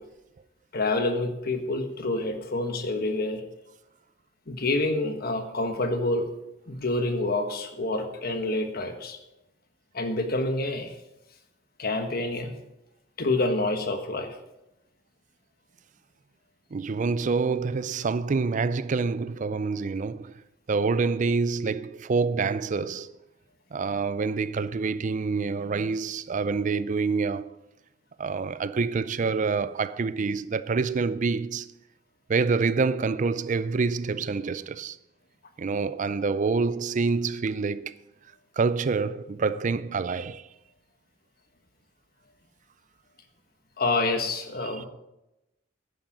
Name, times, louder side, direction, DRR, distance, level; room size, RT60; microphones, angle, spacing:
voice 1, 0.7-3.4 4.5-6.3 6.7-9.2 9.9-10.9 11.8-12.5 13.2-14.4 43.8-44.9, left 2 dB, 50° left, 1.3 m, -27 dB
voice 2, 16.7-20.3 20.7-23.1 23.7-27.5 28.2-31.7 32.3-35.0 35.6-37.9 38.6-40.5 44.6-44.8, right 4 dB, 40° right, 0.4 m, -27 dB
10.5 x 10.0 x 4.9 m
head